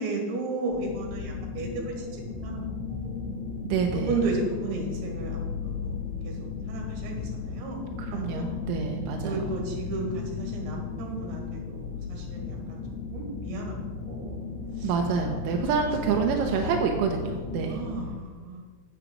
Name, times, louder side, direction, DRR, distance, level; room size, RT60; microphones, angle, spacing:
voice 1, 0.0-2.6 2.9-3.2 3.9-6.0 6.2-6.3 6.7-7.8 8.1-8.5 9.2-12.8 13.1-14.4 14.8-14.9 17.7-18.6, right 3 dB, 70° right, 0 dB, 4.1 m, -34 dB
sound 1, 0.7-18.1, left 5 dB, 30° left, 2.1 m, -35 dB
voice 2, 3.6-4.2 8.0-9.4 14.8-17.8, right 6 dB, 90° right, 2 dB, 3.3 m, -27 dB
8.0 x 7.9 x 6.1 m, 1.5 s
omnidirectional pair, 5.5 m